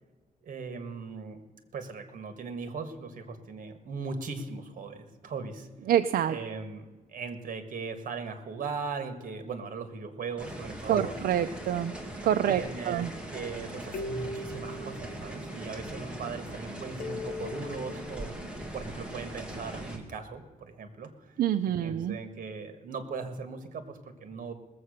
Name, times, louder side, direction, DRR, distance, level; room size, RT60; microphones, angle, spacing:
voice 1, 0.4-1.4 1.7-5.7 6.3-11.1 12.4-18.4 18.7-21.3 21.8-24.5, right 4 dB, 60° right, 9 dB, 1.7 m, -39 dB
voice 2, 5.9-6.4 10.9-12.0 12.2-13.1 21.4-22.2, right 10 dB, 85° right, 8 dB, 0.5 m, -26 dB
sound 1, 9.1-9.2 11.0-12.3 13.9-15.9 17.0-18.5, left 2 dB, 70° left, 1.0 m, -41 dB
sound 2, 10.4-20.0, right 1 dB, 5° right, 2.0 m, -40 dB
19.5 x 7.7 x 6.5 m, 1.3 s
wide cardioid pair, 140°, 15 cm